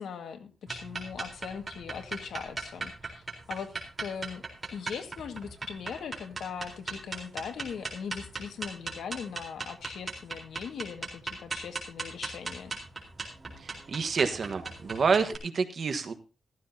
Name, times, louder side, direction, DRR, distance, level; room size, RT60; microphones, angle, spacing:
voice 1, 0.0-3.7 4.0-4.4 4.7-12.8, left 7 dB, 85° left, 6 dB, 1.9 m, -40 dB
sound 1, 0.7-15.4, right 3 dB, 25° right, 4.0 m, -38 dB
voice 2, 13.6-16.1, right 5 dB, 50° right, 8 dB, 1.4 m, -28 dB
15.0 x 14.5 x 2.8 m, 0.32 s
wide cardioid pair, 145°, 0 cm